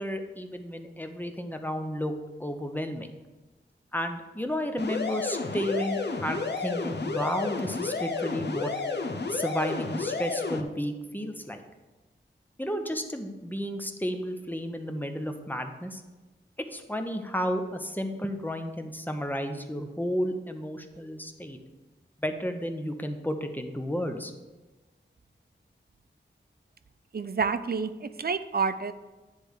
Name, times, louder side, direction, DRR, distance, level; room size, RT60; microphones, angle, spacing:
voice 1, 0.0-3.1 3.9-8.7 9.3-11.6 12.6-16.0 16.7-21.6 22.2-24.3, equal, 10° left, 6 dB, 0.8 m, -32 dB
sound 1, 4.8-10.6, left 4 dB, 60° left, 0.8 m, -31 dB
voice 2, 27.1-28.9, right 5 dB, 55° right, 12 dB, 0.5 m, -29 dB
9.9 x 3.5 x 6.3 m, 1.2 s
wide cardioid pair, 60°, 20 cm